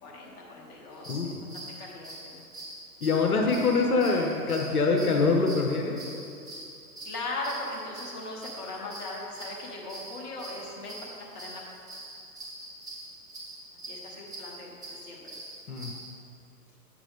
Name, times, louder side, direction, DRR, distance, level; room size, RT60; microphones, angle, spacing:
voice 1, 0.0-1.4 1.8-2.4 7.0-11.6 13.9-15.3, left 2 dB, 25° left, -3 dB, 1.3 m, -39 dB
sound 1, 0.9-16.1, right 1 dB, 10° right, 1.7 m, -44 dB
voice 2, 3.0-6.0 15.7-15.9, left 4 dB, 65° left, 1 dB, 1.0 m, -24 dB
8.5 x 7.4 x 3.5 m, 2.5 s
figure-of-eight pair, 120°, 47 cm